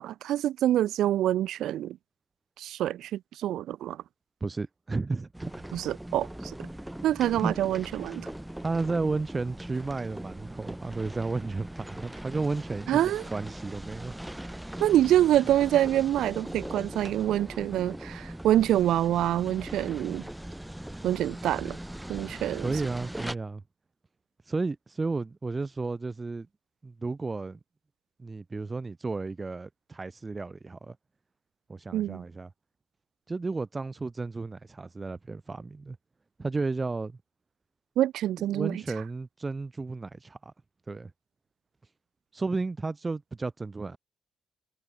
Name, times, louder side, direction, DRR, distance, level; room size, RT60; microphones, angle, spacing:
voice 1, 0.0-2.0 2.6-4.0 5.7-6.7 7.0-8.3 12.9-13.2 14.8-20.2 21.0-21.8 22.1-22.7 31.9-32.2 38.0-38.8, right 12 dB, 80° right, 3.7 m, -26 dB
voice 2, 4.4-5.6 7.4-7.5 8.6-13.0 13.3-14.1 22.6-23.6 24.5-26.5 26.8-27.6 28.2-31.0 31.7-32.5 33.3-36.0 36.4-37.2 38.5-40.5 40.9-41.1 42.3-44.0, right 3 dB, 25° right, 2.4 m, -33 dB
sound 1, 5.3-23.3, right 1 dB, 5° right, 2.5 m, -40 dB
cardioid pair, 90°, 0 cm